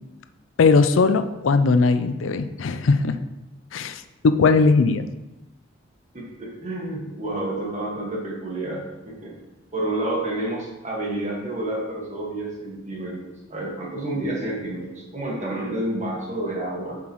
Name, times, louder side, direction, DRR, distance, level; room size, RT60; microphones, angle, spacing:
voice 1, 0.6-3.2 3.7-5.1, left 4 dB, 85° left, 10 dB, 0.4 m, -19 dB
voice 2, 6.1-9.3 9.7-17.0, right 1 dB, 40° right, -2 dB, 1.7 m, -29 dB
7.9 x 5.8 x 3.0 m, 0.97 s
head